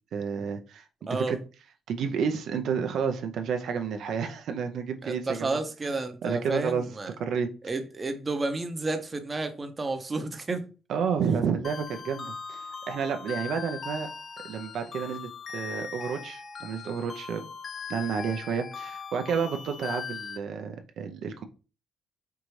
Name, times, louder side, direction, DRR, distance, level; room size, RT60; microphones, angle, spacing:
voice 1, 0.1-0.9 1.1-1.4 1.9-5.6 5.9-6.0 6.2-6.8 7.2-7.5 10.9-14.1 14.4-17.4 17.9-21.4, right 6 dB, 70° right, 0.5 m, -30 dB
voice 2, 1.1-1.4 5.0-7.1 7.6-10.6, right 3 dB, 25° right, 0.6 m, -31 dB
sound 1, 11.6-20.4, left 6 dB, 45° left, 0.5 m, -40 dB
4.5 x 2.6 x 3.1 m
cardioid pair, 90°, 0 cm